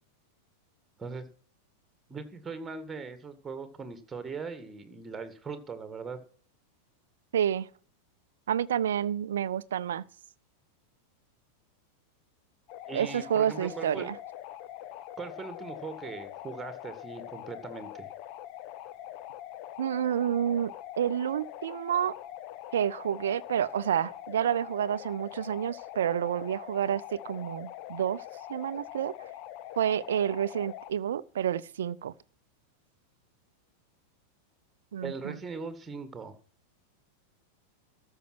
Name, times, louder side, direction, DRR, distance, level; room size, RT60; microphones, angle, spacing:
voice 1, 2.1-6.2 12.9-14.1 15.2-18.1 35.0-36.3, right 4 dB, 15° right, 2.0 m, -40 dB
voice 2, 7.3-7.7 8.5-10.0 12.9-14.1 19.8-22.1 22.7-28.2 28.5-29.1 29.8-32.1 34.9-35.3, right 9 dB, 60° right, 0.6 m, -29 dB
sound 1, 12.7-30.9, left 13 dB, 45° left, 0.7 m, -43 dB
13.5 x 6.6 x 6.1 m
figure-of-eight pair, 90°, 0 cm